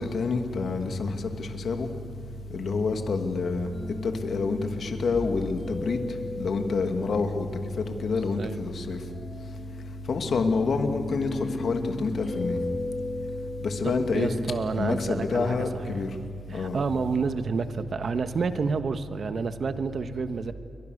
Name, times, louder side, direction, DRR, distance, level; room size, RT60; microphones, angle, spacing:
voice 1, 0.0-1.9 2.5-3.7 4.0-6.0 6.4-7.5 7.8-9.0 10.1-12.6 13.6-14.3 14.8-16.1 16.5-16.8, left 4 dB, 70° left, 5 dB, 2.5 m, -27 dB
sound 1, 3.7-14.8, left 2 dB, 50° left, 5.7 m, -37 dB
voice 2, 13.8-16.0 16.5-20.5, right 5 dB, 60° right, 10 dB, 1.3 m, -29 dB
29.0 x 23.5 x 6.7 m, 2.3 s
cardioid pair, 85°, 0 cm